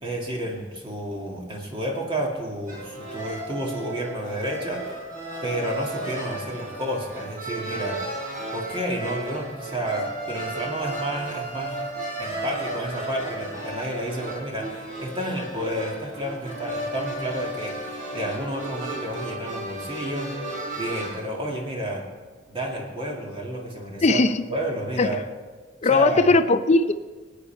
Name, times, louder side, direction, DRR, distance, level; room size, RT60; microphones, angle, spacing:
voice 1, 0.0-5.1 5.4-11.8 12.2-20.4 20.7-22.1 22.5-24.2 24.5-25.2 25.9-26.3, equal, 25° right, 0 dB, 2.1 m, -31 dB
sound 1, 2.7-21.1, right 1 dB, 45° right, 4.2 m, -34 dB
voice 2, 24.0-24.4 25.0-25.2 25.8-26.9, left 3 dB, 35° left, 11 dB, 0.5 m, -19 dB
18.0 x 9.2 x 4.5 m, 1.4 s
head